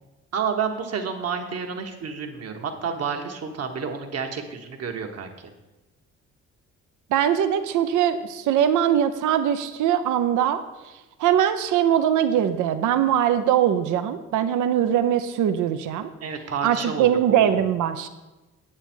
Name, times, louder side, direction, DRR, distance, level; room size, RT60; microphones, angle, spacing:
voice 1, 0.3-5.5 16.2-17.6, right 6 dB, 55° right, 4 dB, 1.3 m, -30 dB
voice 2, 7.1-10.6 11.2-16.1 16.6-18.1, right 10 dB, 80° right, 10 dB, 0.7 m, -21 dB
8.6 x 8.3 x 4.4 m, 1.1 s
cardioid pair, 90°, 30 cm